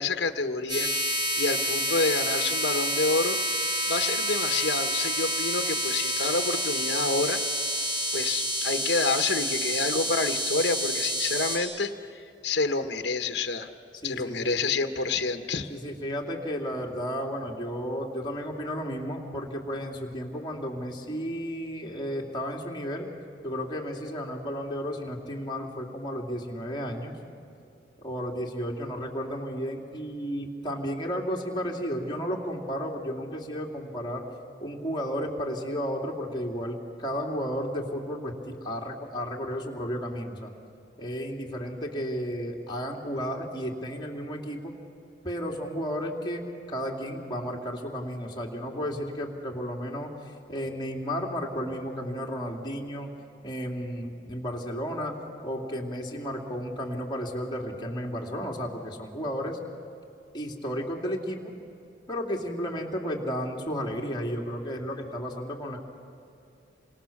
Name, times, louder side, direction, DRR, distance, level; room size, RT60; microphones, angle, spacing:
voice 1, 0.0-7.4 8.1-13.7 14.0-15.7, left 3 dB, 60° left, 7 dB, 1.2 m, -28 dB
sound 1, 0.7-11.6, equal, 25° right, 6.5 m, -28 dB
voice 2, 14.0-14.7 15.7-23.1 23.4-27.2 28.0-34.2 34.6-40.5 41.0-44.7 45.2-53.1 53.4-55.2 55.4-59.6 60.3-61.5 62.1-65.8, equal, 25° left, -1 dB, 2.8 m, -33 dB
28.5 x 25.0 x 7.3 m, 2.6 s
head